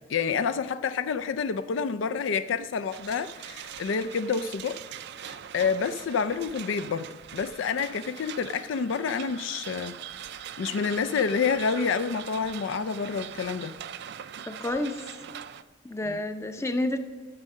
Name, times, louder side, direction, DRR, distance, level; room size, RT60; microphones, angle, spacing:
voice 1, 0.1-4.8 5.2-10.0 10.6-13.7 16.0-16.2, left 5 dB, 65° left, 0.4 m, -28 dB
sound 1, 2.9-15.6, right 9 dB, 55° right, 0.4 m, -42 dB
voice 2, 14.5-15.0 15.8-17.0, left 1 dB, 15° left, 0.5 m, -29 dB
12.0 x 6.2 x 6.5 m
head